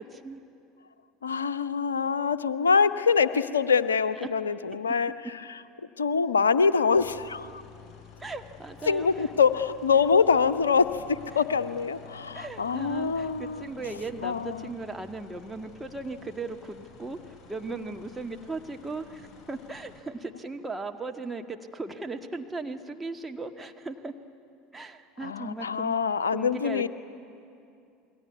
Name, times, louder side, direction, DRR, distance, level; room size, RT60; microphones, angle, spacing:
voice 1, 0.1-0.4 4.2-4.4 8.2-9.3 11.3-11.4 12.3-24.1 24.7-25.9 26.3-26.9, right 3 dB, 10° right, 4 dB, 1.7 m, -37 dB
voice 2, 1.2-5.1 6.0-7.6 8.9-13.7 14.2-14.7 25.2-26.9, left 5 dB, 75° left, 12 dB, 0.8 m, -24 dB
sound 1, 6.9-20.0, left 7 dB, 35° left, 6.2 m, -50 dB
27.5 x 22.0 x 9.5 m, 2.6 s
figure-of-eight pair, 70°, 0 cm